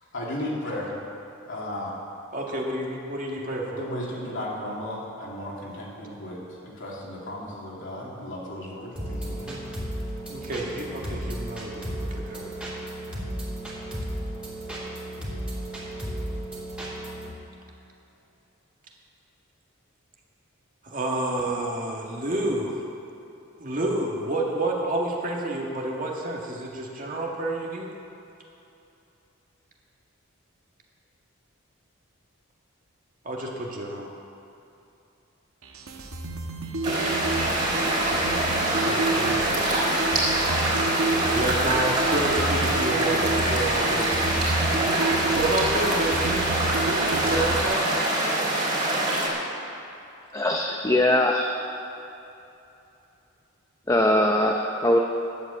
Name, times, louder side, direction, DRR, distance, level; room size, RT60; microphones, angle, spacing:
voice 1, 0.1-0.9 1.5-1.9 3.8-9.5, left 1 dB, 65° left, -4 dB, 2.8 m, -35 dB
voice 2, 2.3-3.8 8.0-8.1 9.5-9.6 10.3-11.8 12.1-12.5 20.8-22.8 23.6-27.9 33.2-34.1 38.8-39.7 41.3-44.1 45.4-46.5 47.0-47.9, right 1 dB, 40° right, -1 dB, 1.8 m, -29 dB
sound 1, 9.0-17.3, right 1 dB, 5° right, 2.9 m, -34 dB
sound 2, 35.6-47.6, right 2 dB, 80° right, 1.3 m, -30 dB
sound 3, 36.8-49.3, right 1 dB, 25° right, 3.6 m, -24 dB
voice 3, 50.3-51.6 53.9-55.0, left 1 dB, 15° left, 1 dB, 0.7 m, -21 dB
11.0 x 8.1 x 8.2 m, 2.8 s
head